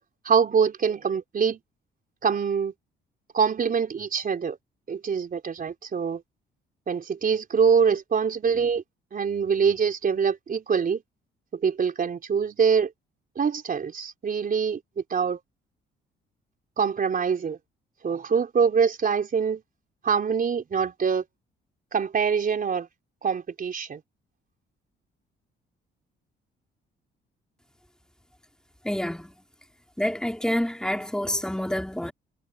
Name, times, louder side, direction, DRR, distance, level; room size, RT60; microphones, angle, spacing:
voice 1, 0.2-1.6 2.2-2.7 3.3-4.6 4.9-6.2 6.9-8.8 9.1-11.0 11.5-12.9 13.4-14.8 15.1-15.4 16.8-17.6 18.0-19.6 20.0-21.2 21.9-22.9 23.2-24.0, right 6 dB, 45° right, 4.3 m, -24 dB
voice 2, 28.8-29.4 30.0-32.1, left 1 dB, 5° left, 3.3 m, -28 dB
cardioid pair, 90°, 20 cm